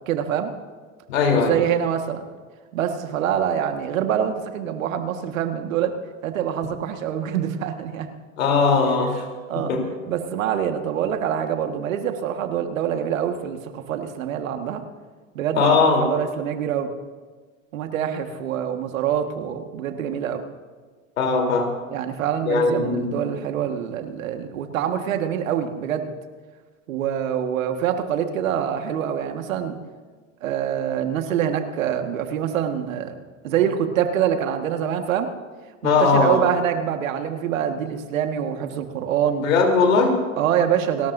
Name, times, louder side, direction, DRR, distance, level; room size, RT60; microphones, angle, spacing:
voice 1, 0.1-0.5 1.3-2.3 2.7-5.9 6.2-8.1 8.8-9.1 9.5-14.8 15.4-16.9 17.7-20.4 21.9-26.1 26.9-29.8 30.4-33.2 33.4-35.3 35.8-39.5 40.4-41.1, right 9 dB, 75° right, 6 dB, 1.8 m, -25 dB
voice 2, 1.1-1.6 8.4-9.2 9.7-9.8 15.6-16.0 21.2-21.7 22.5-23.2 35.8-36.4 39.4-40.2, left 4 dB, 80° left, 2 dB, 3.7 m, -19 dB
30.0 x 13.5 x 2.7 m, 1.4 s
hypercardioid pair, 110°, 40 cm